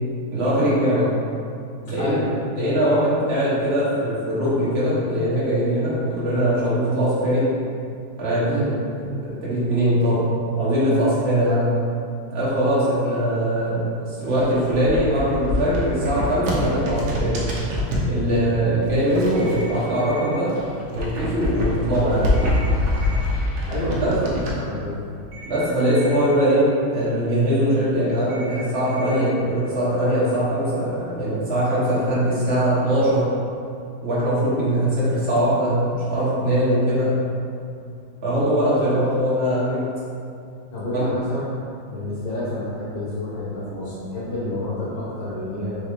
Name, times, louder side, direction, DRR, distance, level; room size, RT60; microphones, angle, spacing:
voice 1, 0.3-1.1 1.9-2.2 2.5-7.5 8.2-8.7 9.4-10.3 10.6-11.7 12.3-17.4 18.1-20.5 20.9-22.4 24.0-24.2 25.4-33.2 34.0-37.1 38.2-39.9 40.9-41.0, equal, 35° right, -9 dB, 1.2 m, -21 dB
voice 2, 1.9-2.3 8.4-8.7 23.7-25.0 40.7-41.4 41.9-45.8, left 1 dB, 65° left, -15 dB, 1.9 m, -29 dB
sound 1, 14.2-18.1 18.8-20.1 20.4-24.5, left 1 dB, 65° right, 1.2 m, -25 dB
sound 2, 19.4-20.4 22.3-23.3 25.3-26.3 28.3-29.3, right 1 dB, 80° right, 1.6 m, -39 dB
4.7 x 3.1 x 3.1 m, 2.5 s
omnidirectional pair, 2.1 m